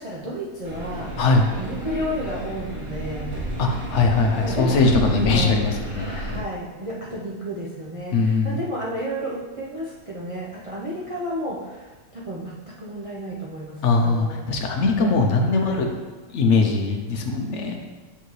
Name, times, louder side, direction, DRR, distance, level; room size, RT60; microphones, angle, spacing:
voice 1, 0.0-1.1 1.6-3.4 4.4-4.8 5.1-5.5 5.8-14.5 15.0-15.2 15.5-15.8, equal, 35° right, -6 dB, 0.5 m, -32 dB
sound 1, 0.6-6.4, right 1 dB, 60° right, 2.4 m, -31 dB
voice 2, 3.6-6.4 8.1-8.6 13.8-15.9 16.3-17.8, left 3 dB, 55° left, 3 dB, 0.9 m, -21 dB
9.4 x 3.5 x 3.1 m, 1.3 s
omnidirectional pair, 1.7 m